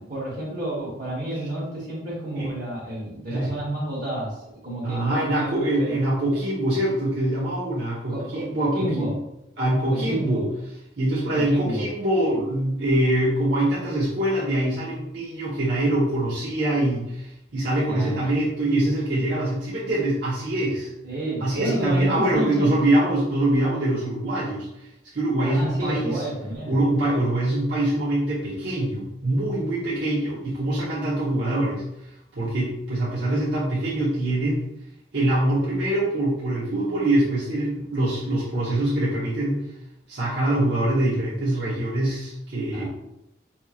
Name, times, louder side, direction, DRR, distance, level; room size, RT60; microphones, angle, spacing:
voice 1, 0.0-4.4 4.6-6.0 8.1-9.1 9.9-10.5 11.3-11.9 12.3-12.4 17.8-18.2 21.0-22.7 25.4-26.8 42.7-42.9, right 1 dB, 50° right, -9 dB, 1.2 m, -30 dB
voice 2, 4.8-9.2 9.6-10.5 11.0-20.9 21.4-24.9 25.1-26.2 26.7-31.8 32.3-34.7 35.1-39.6 40.1-42.9, right 1 dB, 70° right, -8 dB, 1.0 m, -24 dB
5.4 x 2.9 x 2.4 m, 0.86 s
head